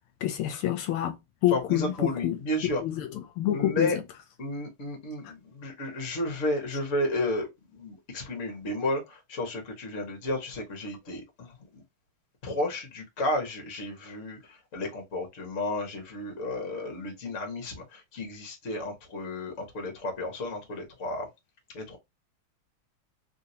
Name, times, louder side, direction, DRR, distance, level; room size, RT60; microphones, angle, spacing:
voice 1, 0.2-1.1 1.4-2.4 2.8-4.0, left 13 dB, 80° left, 1.4 m, -27 dB
voice 2, 1.5-2.8 3.5-4.0 4.4-11.8 12.4-21.3 21.7-22.0, left 1 dB, 40° left, 1.3 m, -32 dB
3.5 x 2.7 x 2.6 m
omnidirectional pair, 2.4 m